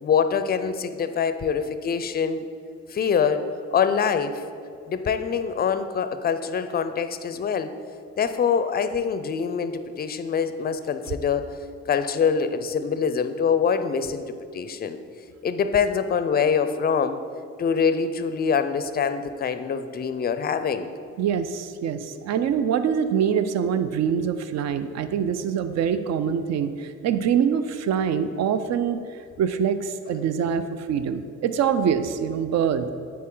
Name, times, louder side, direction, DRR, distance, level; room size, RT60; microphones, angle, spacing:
voice 1, 0.0-2.5 2.9-4.4 4.9-7.7 8.2-11.6 11.9-14.2 14.5-15.0 15.4-17.2 17.6-20.9, left 6 dB, 30° left, 10 dB, 0.4 m, -24 dB
voice 2, 21.2-29.0 29.4-30.6 30.9-32.9, right 7 dB, 60° right, 11 dB, 0.5 m, -24 dB
8.4 x 4.2 x 3.8 m, 2.3 s
cardioid pair, 90°, 30 cm